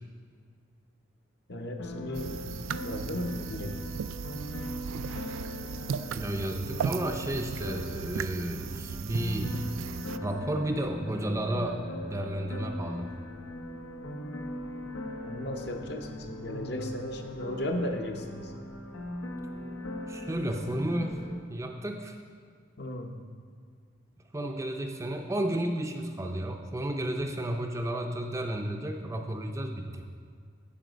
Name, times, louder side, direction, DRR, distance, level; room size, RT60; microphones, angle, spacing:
voice 1, 1.5-2.4 2.8-3.7 15.2-18.5 22.8-23.2, left 1 dB, 55° left, 4 dB, 0.8 m, -35 dB
sound 1, 1.8-21.4, left 1 dB, 85° left, 0.9 m, -40 dB
sound 2, 2.1-10.2, right 7 dB, 80° right, 0.3 m, -37 dB
voice 2, 6.1-9.6 10.2-13.1 20.1-21.2 21.5-22.2 24.3-30.0, right 1 dB, 15° right, 3 dB, 0.5 m, -32 dB
14.0 x 4.9 x 5.1 m, 2.1 s
head